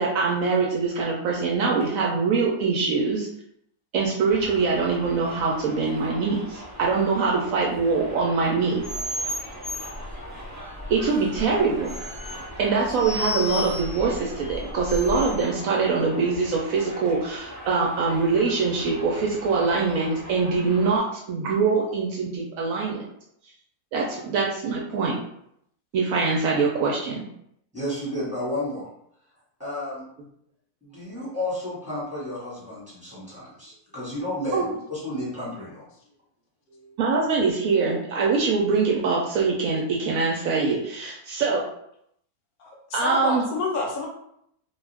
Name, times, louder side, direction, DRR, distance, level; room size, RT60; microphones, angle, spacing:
voice 1, 0.0-3.3 3.9-8.8 10.9-12.0 12.6-23.0 23.9-25.2 25.9-27.2 34.5-34.7 37.0-41.6 42.9-43.4, right 4 dB, 70° right, -2 dB, 0.9 m, -23 dB
Subway metro underground, 4.3-21.0, equal, 25° right, 0.4 m, -41 dB
sound 1, 8.8-15.5, left 1 dB, 25° left, 0.8 m, -34 dB
voice 2, 27.7-28.9 29.6-30.0 30.8-35.8 36.7-36.9, left 1 dB, 5° right, -9 dB, 1.1 m, -32 dB
voice 3, 42.6-44.1, left 3 dB, 75° left, 0 dB, 1.0 m, -28 dB
2.5 x 2.3 x 3.3 m, 0.73 s
omnidirectional pair, 1.7 m